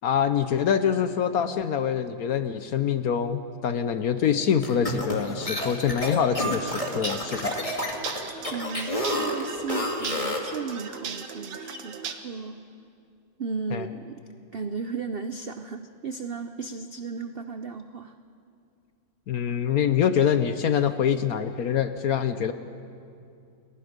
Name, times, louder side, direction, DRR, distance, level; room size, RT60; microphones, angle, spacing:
voice 1, 0.0-7.6 13.7-13.8 19.3-22.5, left 8 dB, 65° left, 10 dB, 1.0 m, -25 dB
sound 1, 4.6-10.5, left 1 dB, 20° left, 2.0 m, -29 dB
sound 2, 6.6-12.1, right 6 dB, 75° right, 1.8 m, -38 dB
voice 2, 8.5-12.6 13.4-14.2 14.5-18.1, right 5 dB, 90° right, 8 dB, 0.5 m, -35 dB
29.0 x 21.5 x 5.2 m, 2.5 s
omnidirectional pair, 1.9 m